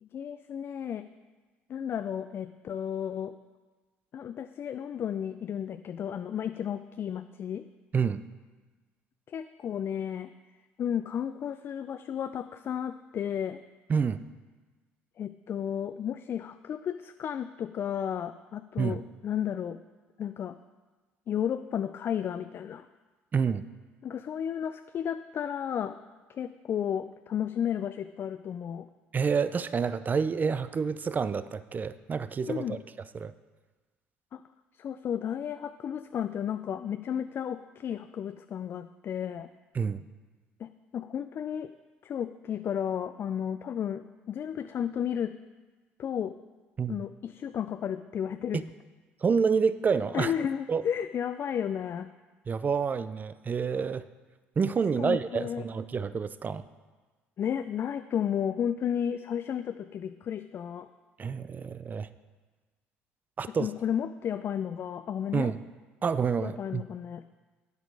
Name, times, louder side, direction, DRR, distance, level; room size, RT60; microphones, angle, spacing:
voice 1, 0.0-1.1 1.7-3.3 4.1-7.7 9.3-10.3 10.8-13.6 15.2-19.8 20.2-20.6 21.3-22.9 24.0-26.0 26.3-28.9 32.5-32.8 34.3-34.4 34.8-39.5 40.6-41.7 42.0-45.4 46.0-46.4 46.9-48.6 50.1-52.1 55.0-55.7 57.4-60.9 63.5-65.5 66.4-67.2, left 9 dB, 45° left, 10 dB, 0.4 m, -33 dB
voice 2, 13.9-14.2 18.8-19.0 23.3-23.7 29.1-32.8 33.1-33.3 39.7-40.0 46.8-46.9 48.5-48.7 49.2-50.3 50.7-50.8 52.5-54.0 54.6-56.6 61.2-62.1 63.4-63.7 65.3-65.6 66.0-66.8, right 5 dB, 35° right, 14 dB, 0.5 m, -28 dB
9.4 x 8.1 x 4.7 m, 1.3 s
hypercardioid pair, 65°, 5 cm